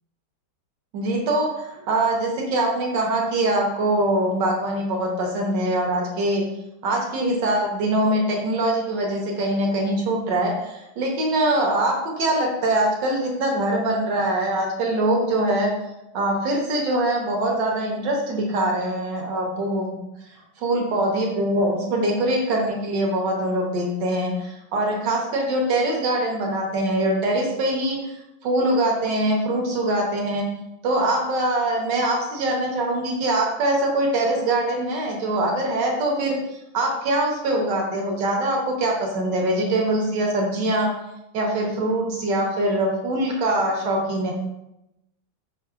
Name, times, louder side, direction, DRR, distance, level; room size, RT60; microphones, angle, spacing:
voice 1, 0.9-6.4 6.8-15.7 16.1-20.0 20.6-28.2 28.4-30.5 30.8-36.4 36.7-40.9 41.3-44.3, right 1 dB, 70° right, 0 dB, 1.3 m, -23 dB
4.5 x 3.2 x 2.3 m, 0.89 s
omnidirectional pair, 2.1 m